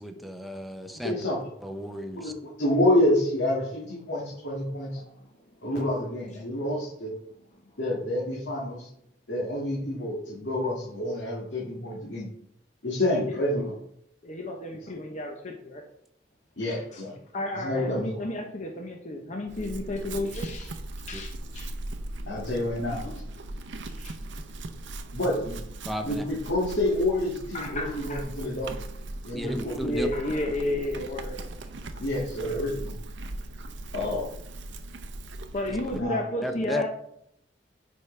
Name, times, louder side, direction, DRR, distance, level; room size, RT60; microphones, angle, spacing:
voice 1, 0.0-1.2 1.6-2.3 21.1-21.2 25.9-26.2 29.3-30.1 36.4-36.9, equal, ahead, 5 dB, 0.6 m, -33 dB
voice 2, 1.0-1.4 2.2-2.3 2.6-5.0 5.6-7.1 7.8-8.9 9.3-12.3 12.8-13.7 16.6-17.1 17.6-18.2 22.3-23.0 25.1-25.6 26.0-28.7 29.2-29.8 32.0-32.9 33.9-34.3 36.0-36.2, left 1 dB, 80° left, -6 dB, 2.0 m, -28 dB
voice 3, 5.0-5.3 13.2-13.3 14.2-15.8 16.7-17.0 17.3-20.8 21.1-21.7 22.3-22.4 23.0-23.2 23.8-24.2 27.5-28.2 29.5-31.4 35.5-36.9, left 1 dB, 40° left, 2 dB, 0.8 m, -33 dB
Chewing mastication / Livestock farm animals working animals, 19.5-36.0, right 1 dB, 80° right, 0.7 m, -39 dB
9.7 x 4.8 x 3.3 m, 0.72 s
head